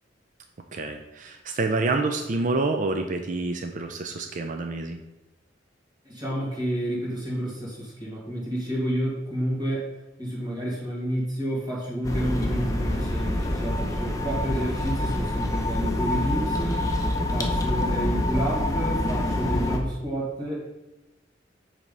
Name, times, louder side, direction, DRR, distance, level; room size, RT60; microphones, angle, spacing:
voice 1, 0.7-5.0, right 3 dB, 45° right, 5 dB, 0.5 m, -27 dB
voice 2, 6.0-9.8 10.2-16.9 17.3-20.7, right 1 dB, 20° right, -5 dB, 2.1 m, -30 dB
sound 1, 12.0-19.8, left 1 dB, 20° left, 0.8 m, -26 dB
7.4 x 3.4 x 5.3 m, 0.99 s
head